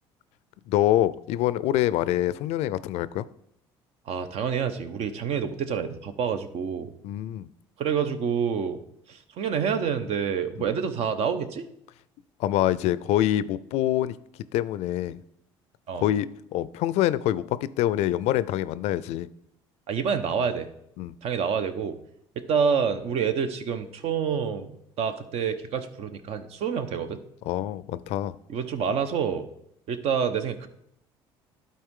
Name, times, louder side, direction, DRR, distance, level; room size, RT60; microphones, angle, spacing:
voice 1, 0.7-3.3 7.0-7.5 10.6-10.7 12.4-14.1 14.5-15.2 15.9-16.3 16.5-19.3 21.0-21.1 27.5-28.3, left 13 dB, 70° left, 17 dB, 0.4 m, -25 dB
voice 2, 4.1-6.9 7.8-8.8 9.1-11.7 15.9-16.1 19.9-20.7 21.2-22.0 22.4-27.2 28.5-29.5 29.9-30.7, right 6 dB, 60° right, 9 dB, 0.9 m, -27 dB
12.0 x 4.2 x 3.7 m, 0.75 s
supercardioid pair, 75°, 12 cm